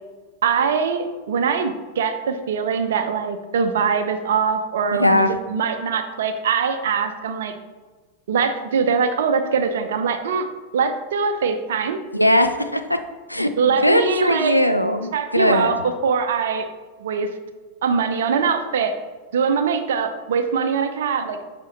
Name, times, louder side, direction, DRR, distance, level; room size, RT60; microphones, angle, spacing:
voice 1, 0.4-7.5 8.3-10.5 10.7-12.0 13.6-14.5 15.1-15.8 16.0-16.7 17.0-17.3 17.8-18.9 19.3-21.4, right 6 dB, 60° right, 8 dB, 0.6 m, -22 dB
voice 2, 5.0-5.3 12.1-13.0 13.3-15.8, left 1 dB, 90° left, 7 dB, 0.5 m, -19 dB
7.5 x 5.1 x 3.1 m, 1.3 s
figure-of-eight pair, 90°, 0 cm